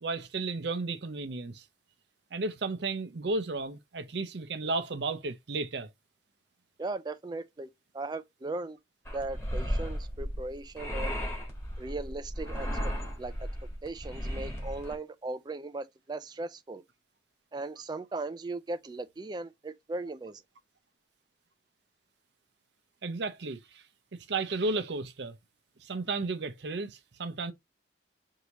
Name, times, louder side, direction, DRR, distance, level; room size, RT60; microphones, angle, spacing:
voice 1, 0.0-1.6 2.3-5.9 23.0-23.8 24.1-25.4 25.8-27.5, right 3 dB, 70° right, 0.6 m, -33 dB
voice 2, 6.8-7.7 7.9-8.8 9.1-11.2 11.8-12.7 13.2-13.3 13.8-16.8 17.5-20.4, right 2 dB, 25° right, 0.3 m, -37 dB
sound 1, 9.1-15.0, equal, 15° left, 1.3 m, -35 dB
4.7 x 2.7 x 2.9 m
head